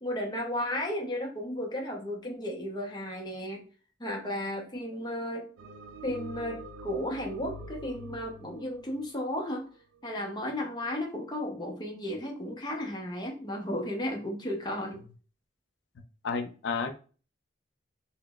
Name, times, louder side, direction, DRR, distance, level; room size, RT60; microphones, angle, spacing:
voice 1, 0.0-3.6 4.0-5.5 6.0-9.7 10.0-15.0, left 1 dB, 20° left, 1 dB, 0.6 m, -34 dB
sound 1, 5.6-10.0, right 1 dB, 85° right, 0.3 m, -45 dB
voice 2, 16.2-16.9, left 5 dB, 65° left, 6 dB, 0.4 m, -31 dB
3.7 x 2.0 x 2.2 m, 0.38 s
head